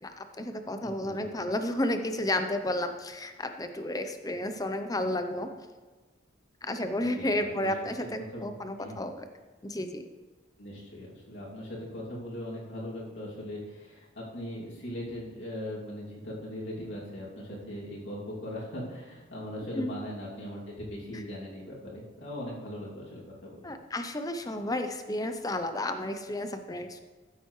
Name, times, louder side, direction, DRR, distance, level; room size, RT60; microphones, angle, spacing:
voice 1, 0.0-5.5 6.6-9.2 9.6-10.1 19.7-19.9 23.6-27.0, left 1 dB, 20° left, 7 dB, 0.6 m, -32 dB
voice 2, 7.1-7.7 8.3-8.5 8.8-9.0 10.6-23.7, left 1 dB, 65° left, -5 dB, 2.7 m, -39 dB
14.0 x 8.0 x 3.2 m, 1.3 s
head